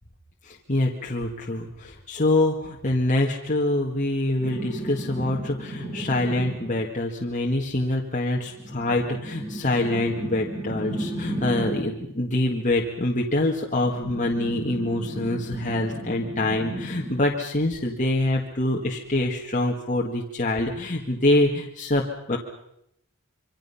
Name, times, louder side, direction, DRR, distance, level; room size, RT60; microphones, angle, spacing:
voice 1, 0.4-22.4, left 1 dB, 35° left, 0 dB, 1.8 m, -25 dB
sound 1, 4.4-6.9 8.5-12.0 13.8-17.4 19.0-19.1, right 1 dB, 15° right, 7.0 m, -34 dB
26.0 x 24.5 x 5.7 m, 0.81 s
head